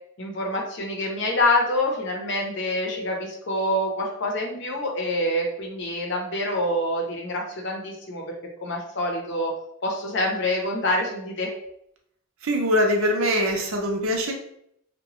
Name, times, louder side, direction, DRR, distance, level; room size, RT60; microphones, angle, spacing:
voice 1, 0.2-8.2 8.6-9.5 9.8-11.5, left 1 dB, 55° left, 0 dB, 0.6 m, -26 dB
voice 2, 12.4-14.3, equal, 75° right, 2 dB, 0.6 m, -22 dB
2.8 x 2.2 x 3.0 m, 0.73 s
head